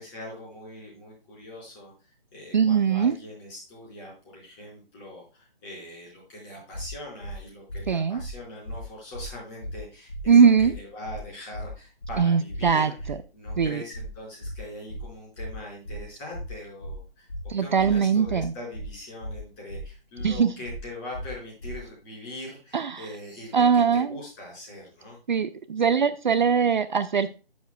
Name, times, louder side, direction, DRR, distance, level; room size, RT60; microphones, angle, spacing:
voice 1, 0.0-1.9 2.3-17.3 17.6-25.2, left 1 dB, 20° left, -4 dB, 5.0 m, -42 dB
voice 2, 2.5-3.1 7.9-8.2 10.3-10.7 12.2-13.2 13.6-13.8 17.5-18.5 20.2-20.5 22.7-23.1 23.5-24.2 25.3-27.3, right 6 dB, 50° right, 12 dB, 0.5 m, -21 dB
sound 1, 6.7-6.9 7.2-7.4 7.7-7.8 8.2-8.3 8.6-8.8 9.1-9.3 9.6-9.8 10.1-10.2 10.6-10.7 11.0-11.2 11.5-11.7 12.0-12.2 12.5-12.6 13.0-13.1 13.4-13.6 13.9-14.1 14.4-14.6 14.9-15.0 15.4-15.5 15.8-16.0 16.3-16.5 16.8-17.0 17.3-17.4 17.8-17.9 18.2-18.4 18.7-18.9 19.2-19.4 19.7-19.8 20.2-20.3 20.6-20.8 21.1-21.3 21.6-21.8, right 1 dB, 60° left, 2.8 m, -36 dB
12.5 x 7.3 x 2.3 m, 0.33 s
figure-of-eight pair, 150°, 30 cm